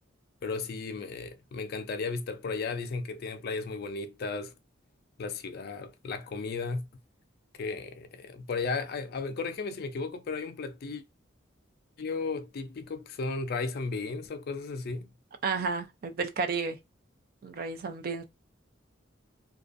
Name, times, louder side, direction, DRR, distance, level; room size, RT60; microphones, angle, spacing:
voice 1, 0.4-4.5 5.2-6.9 7.6-11.0 12.0-15.1, left 4 dB, 55° left, 0.4 m, -35 dB
voice 2, 15.4-16.8 17.4-18.2, right 4 dB, 50° right, 0.3 m, -32 dB
2.4 x 2.3 x 2.5 m
head